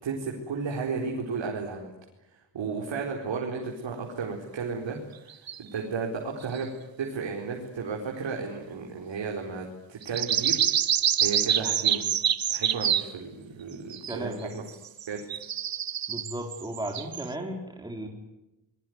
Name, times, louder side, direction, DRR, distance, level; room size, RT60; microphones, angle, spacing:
voice 1, 0.0-1.9 2.5-6.7 7.0-10.6 11.2-12.0 12.5-14.6 15.1-15.2, right 5 dB, 80° right, 0 dB, 4.6 m, -33 dB
sound 1, 5.3-5.6 6.5-6.6 10.0-13.1 13.9-14.3 14.7-17.3, right 9 dB, 55° right, 1.1 m, -26 dB
voice 2, 14.1-14.5 16.1-18.1, right 1 dB, 10° right, 2 dB, 4.2 m, -35 dB
26.5 x 22.0 x 9.5 m, 0.95 s
wide cardioid pair, 130°, 44 cm